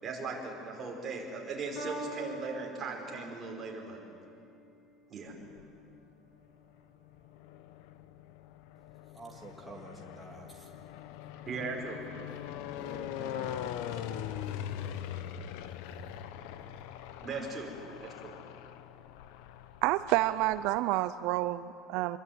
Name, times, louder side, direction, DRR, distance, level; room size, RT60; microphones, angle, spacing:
voice 1, 0.0-4.0 5.1-5.3 11.5-12.0 17.2-17.7 18.0-18.3, right 4 dB, 20° right, -1 dB, 4.9 m, -38 dB
Piano, 1.7-8.3 9.1-9.2, right 1 dB, 50° left, 7.0 m, -47 dB
sound 1, 5.3-6.0 6.8-20.8, left 10 dB, 80° left, 1.2 m, -42 dB
voice 2, 9.1-10.7 12.6-15.1, right 1 dB, ahead, 0 dB, 2.4 m, -50 dB
voice 3, 19.8-22.2, right 16 dB, 60° right, 13 dB, 0.5 m, -29 dB
26.5 x 22.5 x 9.4 m, 2.6 s
cardioid pair, 175°, 0 cm